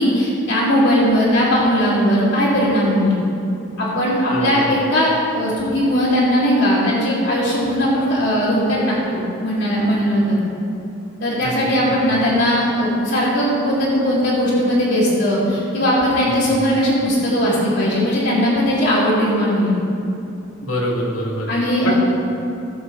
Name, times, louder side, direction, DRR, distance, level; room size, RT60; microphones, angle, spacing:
voice 1, 0.0-3.1 3.8-10.4 11.2-19.7 21.5-21.9, equal, 70° left, -8 dB, 3.0 m, -18 dB
voice 2, 4.3-4.7 11.4-11.5 11.9-12.0 16.3-16.6 20.6-21.5 21.8-21.9, equal, 90° left, -3 dB, 2.4 m, -25 dB
18.0 x 7.5 x 4.1 m, 2.7 s
head